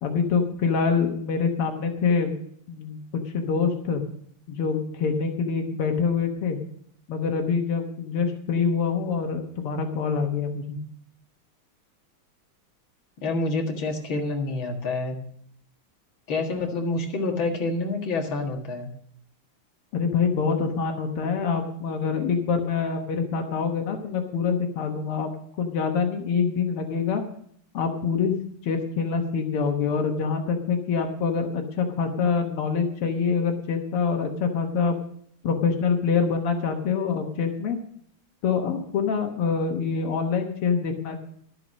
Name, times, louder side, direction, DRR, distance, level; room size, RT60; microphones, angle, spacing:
voice 1, 0.0-2.4 2.7-3.0 3.3-4.0 4.5-6.6 7.1-10.8 19.9-25.3 25.6-27.3 27.7-28.3 28.6-35.0 35.4-37.8 38.4-41.2, left 5 dB, 90° left, 3 dB, 2.1 m, -25 dB
voice 2, 13.2-15.2 16.3-18.9, left 3 dB, 65° left, 1 dB, 2.5 m, -27 dB
12.5 x 8.3 x 6.2 m, 0.64 s
omnidirectional pair, 2.4 m